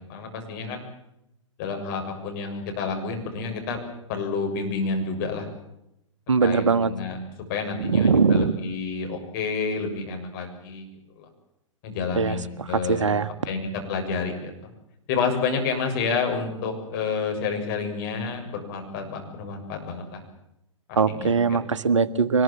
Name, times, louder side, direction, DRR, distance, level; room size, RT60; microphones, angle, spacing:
voice 1, 0.1-0.9 1.6-3.8 4.1-5.5 6.4-7.2 7.5-10.9 11.2-11.3 11.8-13.2 13.5-13.6 13.9-14.5 15.1-20.2 20.9-21.3, left 5 dB, 40° left, 3 dB, 7.1 m, -29 dB
voice 2, 6.3-6.9 7.8-8.6 12.1-13.3 20.9-22.4, right 5 dB, 70° right, 14 dB, 1.4 m, -21 dB
24.0 x 21.0 x 7.6 m, 0.82 s
figure-of-eight pair, 110°, 16 cm